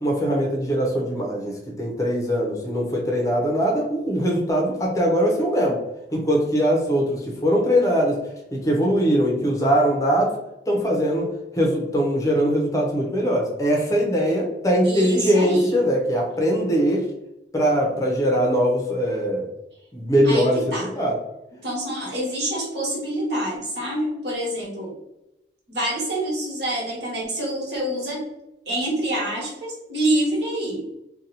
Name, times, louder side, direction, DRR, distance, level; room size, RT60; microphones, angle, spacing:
voice 1, 0.0-5.8 6.1-8.2 8.5-10.3 10.7-17.0 17.5-19.4 19.9-21.2, equal, 20° left, -1 dB, 0.6 m, -21 dB
voice 2, 14.8-15.9 20.2-20.9 21.6-24.9 25.7-28.2 28.7-30.9, right 1 dB, 70° right, -4 dB, 1.3 m, -26 dB
2.7 x 2.2 x 4.0 m, 0.92 s
head